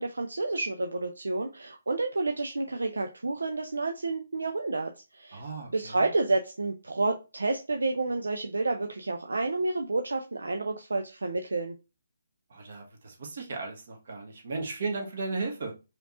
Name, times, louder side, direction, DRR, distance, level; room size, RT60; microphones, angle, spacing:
voice 1, 0.0-5.4 5.7-11.8, right 3 dB, 65° right, 0.5 m, -30 dB
voice 2, 5.3-6.1 12.5-15.7, right 3 dB, 45° right, 1.3 m, -35 dB
5.0 x 3.0 x 2.4 m
figure-of-eight pair, 140°, 0 cm